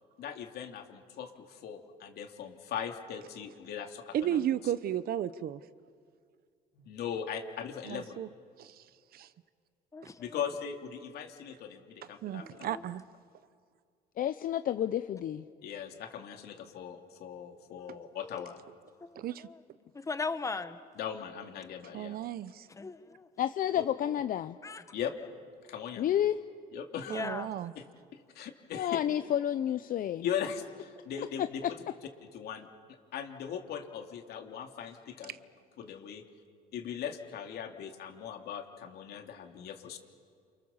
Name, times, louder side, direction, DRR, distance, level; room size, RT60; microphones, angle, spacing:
voice 1, 0.2-4.7 6.7-8.2 10.2-12.8 15.6-18.6 21.0-22.2 23.7-23.8 24.9-25.1 25.7-26.1 26.7-27.3 27.8-27.9 28.3-28.9 30.2-31.6 32.3-32.7 33.1-35.3 35.8-36.2 36.7-40.0, left 8 dB, 70° left, 4 dB, 3.0 m, -39 dB
voice 2, 4.1-5.6 7.8-8.3 8.6-8.7 9.1-9.3 12.2-13.0 19.2-19.5 21.9-22.6 27.1-27.7, right 11 dB, 60° right, 15 dB, 1.0 m, -33 dB
voice 3, 9.9-10.4 12.4-12.8 17.8-18.4 19.0-19.6 19.9-20.8 22.7-23.3 24.6-24.8 27.1-27.5, left 4 dB, 20° left, 11 dB, 1.3 m, -39 dB
voice 4, 14.2-15.4 23.4-24.6 26.0-26.4 28.7-30.3 31.4-31.7, left 11 dB, 55° left, 11 dB, 0.8 m, -30 dB
29.0 x 28.5 x 7.3 m, 2.2 s
cardioid pair, 110°, 17 cm